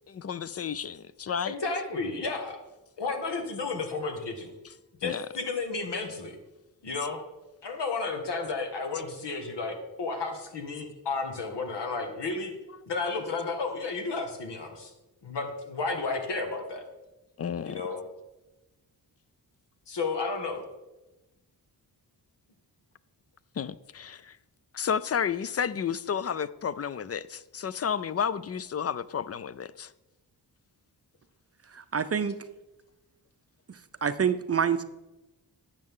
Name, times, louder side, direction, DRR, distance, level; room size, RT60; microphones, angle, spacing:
voice 1, 0.1-1.5 5.0-5.3 17.4-17.8 23.6-24.4 24.7-29.9, left 7 dB, 35° left, 0.5 m, -31 dB
voice 2, 1.5-2.6 3.0-4.5 5.0-6.4 6.8-7.2 7.6-12.5 12.9-14.9 15.2-16.8 17.6-18.0 19.9-20.6, left 3 dB, 80° left, 1.9 m, -32 dB
voice 3, 31.7-32.4 33.7-34.8, right 7 dB, 35° right, 0.6 m, -27 dB
12.0 x 8.0 x 3.8 m
cardioid pair, 75°, 41 cm